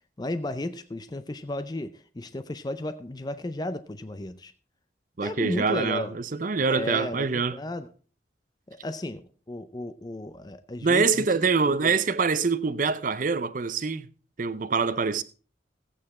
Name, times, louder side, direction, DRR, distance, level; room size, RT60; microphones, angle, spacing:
voice 1, 0.2-4.5 5.2-6.1 6.6-7.9 8.7-11.3 11.7-11.9, left 1 dB, 20° left, 0.5 m, -34 dB
voice 2, 5.2-7.6 10.8-14.1 14.4-15.2, right 4 dB, 45° right, 0.6 m, -25 dB
15.0 x 8.6 x 4.2 m
head